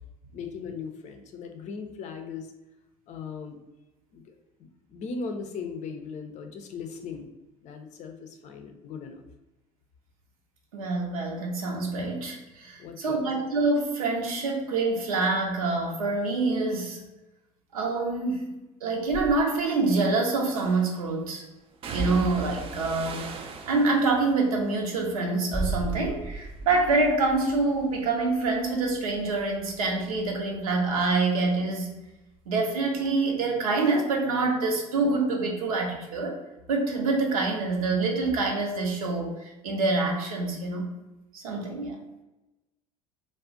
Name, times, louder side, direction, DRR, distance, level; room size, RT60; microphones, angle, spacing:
voice 1, 0.3-2.5 3.1-3.6 4.1-7.3 7.6-9.2 12.8-13.3, left 5 dB, 40° left, 5 dB, 0.5 m, -38 dB
voice 2, 10.7-17.0 17.7-18.5 18.8-21.4 21.9-23.2 23.7-31.9 32.5-36.4 36.7-40.9 41.3-42.0, right 3 dB, 80° right, 1 dB, 0.7 m, -26 dB
sound 1, 19.1-19.3 20.6-21.0 21.8-26.1 26.4-27.0 27.4-30.7 30.9-32.1 32.3-32.5, right 4 dB, 30° right, 0.4 m, -39 dB
sound 2, 25.5-31.3 31.5-31.6, right 2 dB, 5° right, 0.8 m, -37 dB
2.4 x 2.1 x 3.7 m, 1.0 s
hypercardioid pair, 75°, 18 cm